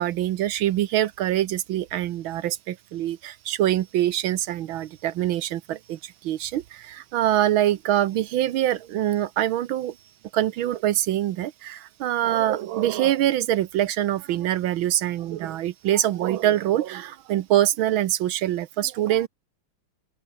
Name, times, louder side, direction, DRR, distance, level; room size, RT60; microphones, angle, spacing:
voice 1, 0.0-9.9 10.3-19.3, right 12 dB, 75° right, 1.5 m, -24 dB
open air
omnidirectional pair, 2.3 m